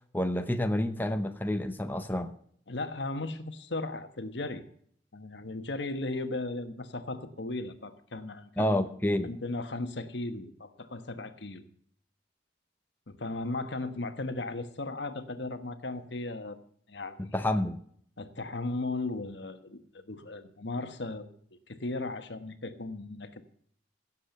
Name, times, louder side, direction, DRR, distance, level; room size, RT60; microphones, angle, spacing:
voice 1, 0.1-2.3 8.6-9.3 17.3-17.8, left 1 dB, 10° left, 7 dB, 0.7 m, -29 dB
voice 2, 2.7-4.6 5.1-8.9 9.2-11.7 13.1-16.6 16.9-17.3 18.2-21.3 21.7-23.4, left 2 dB, 70° left, 10 dB, 1.3 m, -36 dB
16.5 x 7.6 x 6.6 m, 0.62 s
head